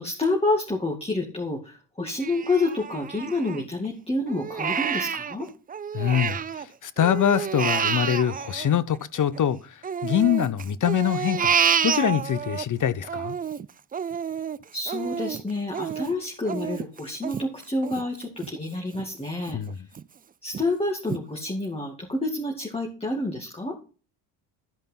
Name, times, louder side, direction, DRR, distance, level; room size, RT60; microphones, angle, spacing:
voice 1, 0.0-5.5 14.7-19.6 20.4-23.8, left 2 dB, 10° left, 2.2 m, -28 dB
Crying sobbing, 2.2-3.9 4.3-6.7 7.0-9.4 9.8-12.6 13.0-18.5 18.9-19.0 19.5-20.0 20.5-20.6 21.1-21.2, right 7 dB, 20° right, 0.4 m, -29 dB
voice 2, 5.9-9.6 10.0-11.5 11.8-13.4 19.5-19.7, left 9 dB, 40° left, 0.9 m, -24 dB
13.5 x 5.2 x 5.8 m
hypercardioid pair, 60°, 47 cm